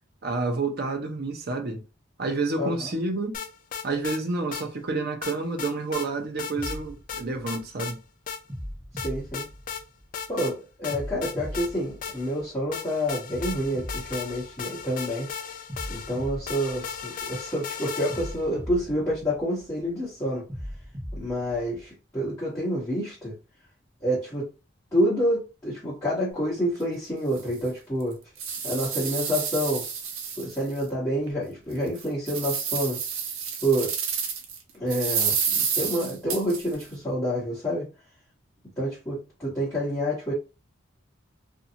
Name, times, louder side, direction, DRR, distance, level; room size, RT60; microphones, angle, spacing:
voice 1, 0.2-1.8 2.2-3.4 3.8-8.0, right 3 dB, 50° right, 0.6 m, -29 dB
voice 2, 2.6-2.9 8.9-9.5 10.3-15.3 15.9-20.4 21.1-23.3 24.0-24.5 24.9-28.2 28.6-29.9 30.4-33.0 33.6-33.9 34.7-37.9 38.8-40.3, equal, 15° left, 1.2 m, -28 dB
sound 1, 3.3-4.2 4.5-4.7 5.2-6.1 6.4-6.8 7.1-8.0 8.3-8.4 9.0-9.8 10.1-10.5 10.8-12.4 12.7-18.5, left 7 dB, 40° left, 0.3 m, -36 dB
sound 2, 6.6-7.9 8.5-10.2 10.9-12.7 13.3-15.1 15.7-17.5 18.1-19.8 20.5-21.9, equal, 15° right, 0.7 m, -39 dB
sound 3, 26.8-26.9 27.4-27.5 28.0-30.8 31.3-31.4 31.9-34.6 34.9-36.8, right 6 dB, 85° right, 0.7 m, -29 dB
2.6 x 2.3 x 2.7 m
head